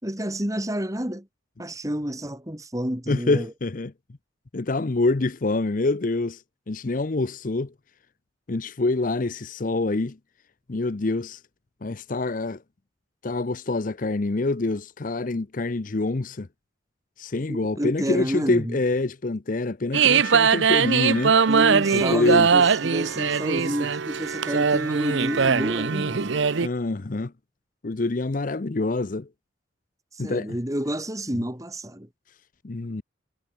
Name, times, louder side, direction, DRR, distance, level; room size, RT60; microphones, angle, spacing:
voice 1, 0.0-1.3 1.6-3.5 17.5-18.8 21.5-26.4 30.1-32.1, equal, 15° right, 2.9 m, -29 dB
voice 2, 3.1-3.9 4.5-7.7 8.5-10.2 10.7-11.4 11.8-12.6 13.2-16.5 17.2-21.4 21.9-22.5 26.6-27.3 27.8-29.3 30.2-30.6 31.3-31.4 32.6-33.0, left 2 dB, 45° left, 0.6 m, -26 dB
sound 1, 19.9-26.7, right 6 dB, 70° right, 0.7 m, -21 dB
head